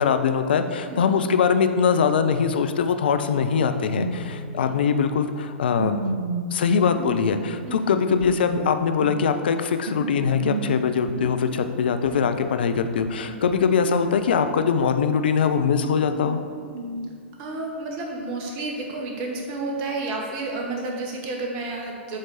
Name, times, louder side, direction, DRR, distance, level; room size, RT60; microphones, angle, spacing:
voice 1, 0.0-6.0 6.5-16.4, left 6 dB, 55° left, 8 dB, 0.4 m, -22 dB
voice 2, 0.8-1.3 4.5-4.8 7.6-8.0 12.1-12.3 13.2-13.3 17.4-22.2, right 2 dB, 35° right, 0 dB, 1.0 m, -31 dB
sound 1, 3.9-4.2 4.5-4.6 5.8-7.6 8.1-9.2 9.8-13.1 13.5-17.1, right 3 dB, 50° right, 0.6 m, -33 dB
sound 2, 4.1-10.4, left 2 dB, 5° left, 1.4 m, -45 dB
7.3 x 3.3 x 4.1 m, 2.1 s
figure-of-eight pair, 105°, 6 cm